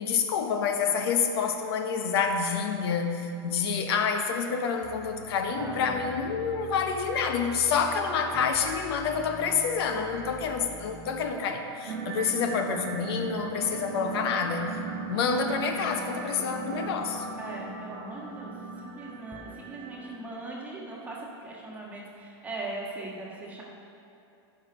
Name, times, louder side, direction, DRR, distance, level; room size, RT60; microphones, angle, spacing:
voice 1, 0.0-14.8 15.1-17.2, left 6 dB, 65° left, 5 dB, 0.9 m, -28 dB
sound 1, 4.8-13.1 13.7-14.6 16.4-18.1 19.2-21.8, left 1 dB, 5° left, 0.6 m, -48 dB
voice 2, 5.6-6.1 17.4-23.6, right 2 dB, 10° right, -3 dB, 1.4 m, -40 dB
sound 2, 11.9-20.3, right 4 dB, 60° right, 1.0 m, -38 dB
13.0 x 5.5 x 5.2 m, 2.7 s
supercardioid pair, 165°, 14 cm